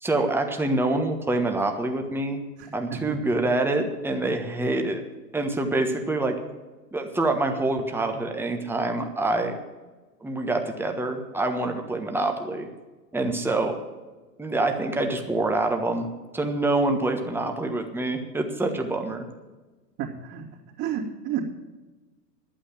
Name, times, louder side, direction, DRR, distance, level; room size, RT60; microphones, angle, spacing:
voice 1, 0.0-2.4 2.7-5.0 5.3-6.4 6.9-9.6 10.2-12.7 13.1-13.8 14.4-16.1 16.3-19.2, right 2 dB, 5° right, 4 dB, 1.3 m, -26 dB
voice 2, 2.6-3.0 4.1-4.3 20.0-20.4 20.8-21.5, right 8 dB, 40° right, -8 dB, 2.9 m, -31 dB
11.5 x 8.9 x 7.6 m, 1.2 s
hypercardioid pair, 105°, 50 cm